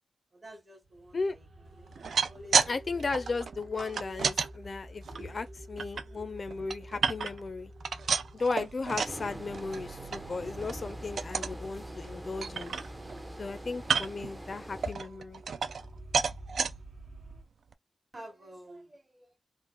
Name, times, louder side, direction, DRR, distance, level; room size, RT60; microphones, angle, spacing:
voice 1, 0.3-1.4 1.8-2.6 4.6-4.8 5.1-5.4 6.1-6.3 11.1-11.3 13.5-13.7 18.1-19.4, equal, 30° right, 1.1 m, -49 dB
sound 1, 0.8-17.4, right 1 dB, 60° right, 1.1 m, -48 dB
sound 2, 1.9-2.7 3.0-4.5 5.0-6.0 6.5-7.5 7.8-9.2 9.5-9.8 10.1-10.2 10.6-10.8 11.2-11.6 12.0-12.1 12.4-13.2 13.8-14.3 14.8-15.9 16.1-16.7 17.3-17.4 17.7-17.8, right 6 dB, 80° right, 0.4 m, -30 dB
voice 2, 2.6-7.7 8.3-12.7 13.4-15.4, left 4 dB, 40° left, 0.4 m, -35 dB
sound 3, 8.9-14.9, right 1 dB, 15° right, 0.5 m, -45 dB
3.6 x 2.5 x 2.9 m
wide cardioid pair, 165°, 0 cm